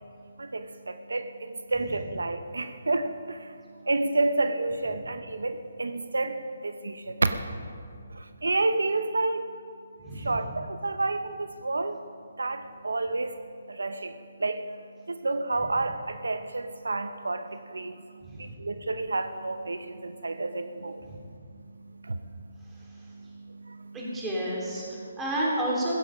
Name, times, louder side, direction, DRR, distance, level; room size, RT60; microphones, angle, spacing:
voice 1, 0.4-3.5 3.9-7.3 8.1-9.5 10.2-12.0 12.4-13.3 13.7-14.7 15.1-18.1 18.4-21.0 22.0-22.2 22.9-24.2 25.0-25.1, right 2 dB, 85° right, 10 dB, 0.8 m, -30 dB
voice 2, 10.0-10.4 18.2-18.5 21.0-21.2 23.9-24.8 25.2-26.0, right 1 dB, 10° right, -5 dB, 3.6 m, -30 dB
16.0 x 14.0 x 5.1 m, 2.3 s
hypercardioid pair, 155°, 0 cm